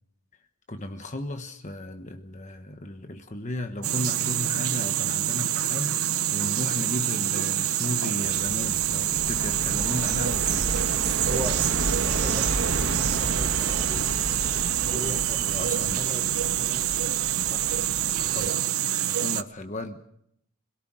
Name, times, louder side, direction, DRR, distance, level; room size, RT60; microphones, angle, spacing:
voice 1, 0.7-10.7 11.2-11.3 15.4-16.0 18.2-18.6 18.9-20.1, left 1 dB, 35° left, 6 dB, 1.2 m, -34 dB
sound 1, 3.8-19.4, right 12 dB, 75° right, 0.7 m, -26 dB
sound 2, 8.2-18.5, right 2 dB, 60° right, 1.4 m, -32 dB
voice 2, 9.6-10.1 11.2-14.1 14.8-17.1 17.4-17.9, equal, 15° right, 3 dB, 2.2 m, -38 dB
26.0 x 17.5 x 6.3 m, 0.73 s
head